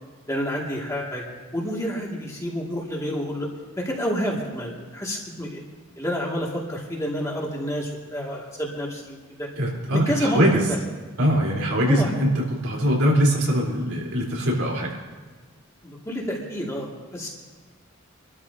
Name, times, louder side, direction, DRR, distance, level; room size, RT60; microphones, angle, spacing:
voice 1, 0.3-1.2 1.5-3.5 3.8-5.6 6.0-9.5 9.9-10.4 11.9-12.1 15.8-17.3, equal, 15° left, -3 dB, 2.2 m, -29 dB
voice 2, 9.6-10.7 11.2-14.9, equal, 85° right, -3 dB, 3.9 m, -22 dB
27.5 x 12.5 x 2.8 m, 1.4 s
head